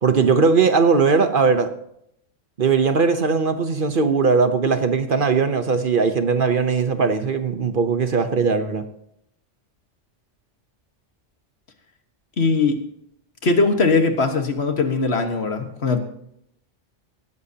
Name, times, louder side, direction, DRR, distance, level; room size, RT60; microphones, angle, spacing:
voice 1, 0.0-1.7 2.6-8.9, right 5 dB, 50° right, 1.0 m, -19 dB
voice 2, 12.4-12.8 13.4-16.0, left 3 dB, 60° left, 1.7 m, -20 dB
18.0 x 13.5 x 2.9 m
omnidirectional pair, 1.2 m